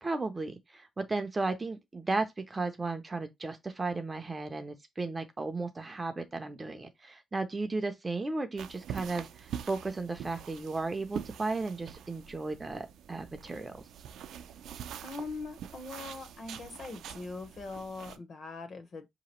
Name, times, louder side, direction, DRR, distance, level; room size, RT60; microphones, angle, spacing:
voice 1, 0.0-13.8, right 3 dB, 15° right, 0.5 m, -35 dB
sound 1, 8.6-18.2, right 9 dB, 80° right, 0.5 m, -44 dB
voice 2, 15.0-19.1, left 3 dB, 40° left, 1.0 m, -41 dB
5.7 x 2.9 x 3.0 m
wide cardioid pair, 180°, 0 cm